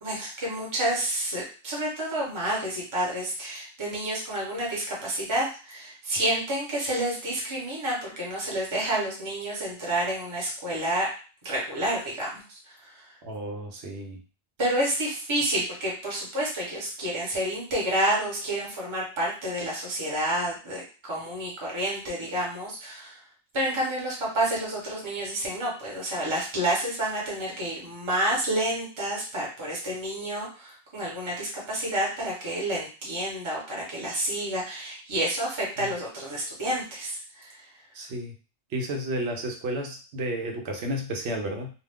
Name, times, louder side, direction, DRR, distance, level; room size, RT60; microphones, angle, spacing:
voice 1, 0.0-11.1 11.4-13.0 14.6-23.2 23.5-37.7, right 1 dB, 30° right, -4 dB, 0.9 m, -29 dB
voice 2, 13.2-14.2 35.8-35.9 37.9-38.3 38.7-41.7, right 1 dB, 85° right, 3 dB, 0.9 m, -32 dB
2.4 x 2.3 x 3.4 m, 0.36 s
omnidirectional pair, 1.1 m